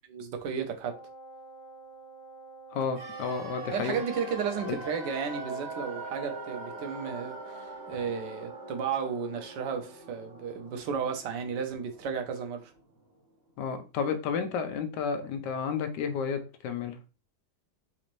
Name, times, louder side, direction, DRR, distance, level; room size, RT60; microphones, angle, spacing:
voice 1, 0.1-0.9 3.7-12.7, right 6 dB, 85° right, 1.3 m, -33 dB
Wind instrument woodwind instrument, 0.8-9.0, right 3 dB, 65° left, 1.5 m, -47 dB
voice 2, 2.7-4.0 4.7-4.8 13.6-17.0, left 6 dB, 80° left, 1.2 m, -31 dB
sound 1, 2.9-12.9 13.1-13.2, right 2 dB, 40° right, 1.5 m, -43 dB
4.1 x 3.0 x 2.5 m
omnidirectional pair, 1.8 m